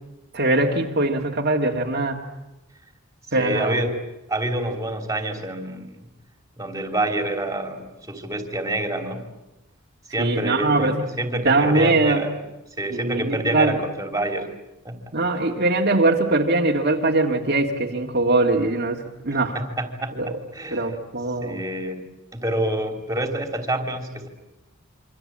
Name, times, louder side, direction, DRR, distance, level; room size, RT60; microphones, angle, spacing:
voice 1, 0.3-2.2 3.3-3.8 10.2-11.1 11.4-12.2 12.9-13.8 15.1-19.6 20.2-20.3 20.7-21.6, right 2 dB, 45° right, 0 dB, 2.1 m, -21 dB
voice 2, 3.4-4.0 4.3-6.0 6.6-9.2 10.1-12.4 12.8-14.5 14.8-15.0 19.5-20.9 21.4-22.1 22.3-24.3, right 1 dB, 15° right, 5 dB, 3.2 m, -27 dB
27.0 x 25.0 x 8.8 m, 0.98 s
head